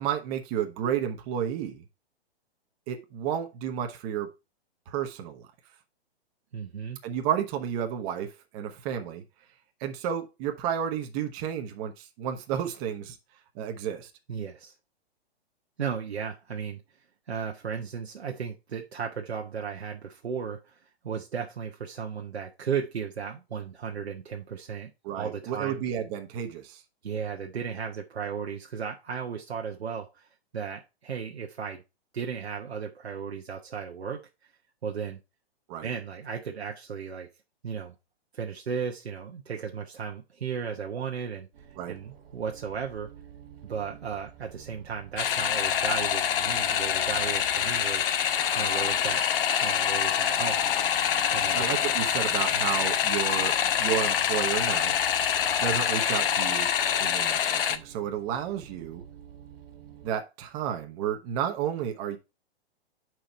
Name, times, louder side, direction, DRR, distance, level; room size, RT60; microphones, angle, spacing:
voice 1, 0.0-1.8 2.9-4.3 4.9-5.5 7.0-9.2 9.8-13.2 13.5-14.1 25.0-26.8 35.7-35.9 41.8-42.0 51.5-54.9 55.6-56.7 57.0-59.0 60.0-62.2, right 9 dB, 35° right, 1.0 m, -31 dB
voice 2, 6.5-7.0 14.3-14.7 15.8-16.8 17.3-25.8 27.0-30.3 30.5-31.8 32.1-34.2 34.8-35.2 35.8-37.3 37.6-37.9 38.3-41.5 41.9-43.1 43.6-48.1 48.5-49.2 49.6-50.7 51.3-51.7, right 6 dB, 85° right, 1.0 m, -35 dB
sound 1, 41.5-60.1, right 8 dB, 60° right, 1.9 m, -49 dB
sound 2, 45.2-57.8, left 9 dB, 60° left, 0.8 m, -26 dB
5.0 x 4.6 x 5.5 m
hypercardioid pair, 125°, 31 cm